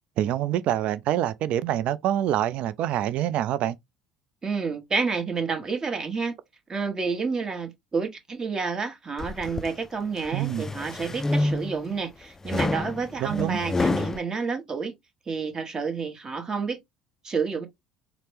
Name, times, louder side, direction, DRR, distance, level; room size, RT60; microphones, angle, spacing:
voice 1, 0.2-3.8 10.3-10.6 13.2-13.6, right 12 dB, 55° right, 0.3 m, -26 dB
voice 2, 4.4-6.3 6.7-14.9 15.3-16.8 17.2-17.7, right 5 dB, 30° right, 1.1 m, -29 dB
sound 1, 9.2-9.7 10.3-11.9 12.5-14.2, left 2 dB, 20° left, 0.3 m, -28 dB
4.1 x 2.0 x 3.3 m
hypercardioid pair, 65°, 2 cm